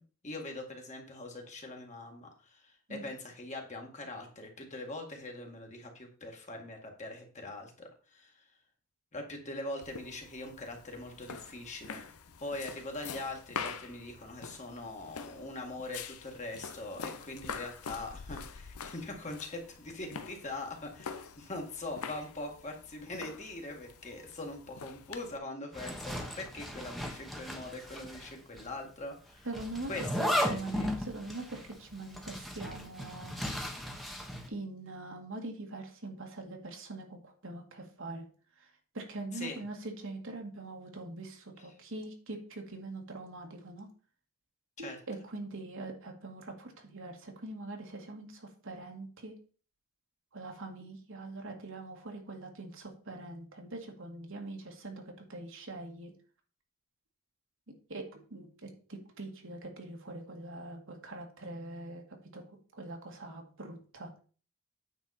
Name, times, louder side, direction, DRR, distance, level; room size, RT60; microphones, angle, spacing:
voice 1, 0.2-8.4 9.1-12.1 12.4-29.5 29.9-30.9 39.3-39.6 44.8-45.0, left 2 dB, 35° left, 2 dB, 2.0 m, -42 dB
sound 1, 9.8-25.4, left 6 dB, 80° left, 0.8 m, -45 dB
Zipper (clothing), 25.7-28.3 28.6-28.7 29.5-34.5, equal, ahead, 1.3 m, -36 dB
voice 2, 29.4-29.9 30.2-33.3 34.5-38.3 38.6-43.9 44.8-49.4 50.3-56.1 57.7-64.1, right 2 dB, 60° right, 2 dB, 2.0 m, -43 dB
9.3 x 6.3 x 4.3 m, 0.40 s
head